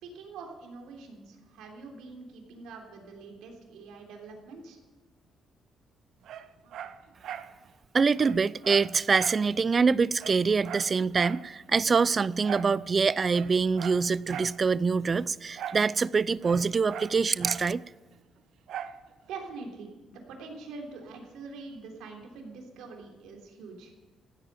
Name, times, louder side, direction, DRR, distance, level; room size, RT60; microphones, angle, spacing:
voice 1, 0.0-4.8 19.3-23.9, right 4 dB, 90° right, 3.3 m, -44 dB
Dog, 6.2-7.5 7.8-7.9 8.2-9.5 9.8-9.9 10.2-11.5 12.4-12.8 13.2-14.6 15.6-15.9 16.2-17.7 18.7-19.0 19.5-19.6, right 9 dB, 75° right, 0.8 m, -40 dB
voice 2, 7.9-17.8, right 5 dB, 35° right, 0.4 m, -25 dB
15.5 x 8.9 x 9.0 m
cardioid pair, 90°, 0 cm